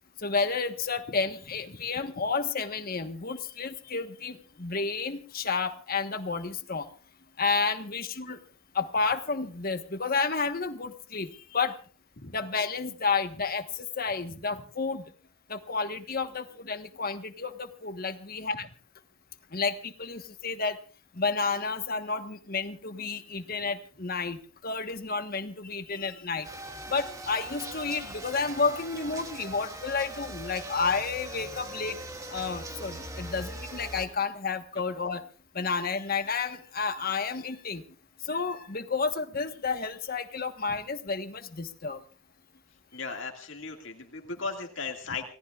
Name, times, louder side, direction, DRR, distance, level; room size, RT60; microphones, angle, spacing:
voice 1, 0.2-6.9 7.4-8.4 8.7-11.8 12.3-15.0 15.5-18.7 19.5-20.8 21.1-26.5 26.9-32.0 32.3-35.2 35.5-37.8 38.2-42.0, left 4 dB, 45° left, 8 dB, 1.4 m, -31 dB
sound 1, 26.4-34.0, right 1 dB, 15° right, 1.8 m, -41 dB
voice 2, 42.9-45.3, left 4 dB, 65° left, 3 dB, 2.2 m, -36 dB
29.0 x 18.5 x 2.5 m, 0.39 s
head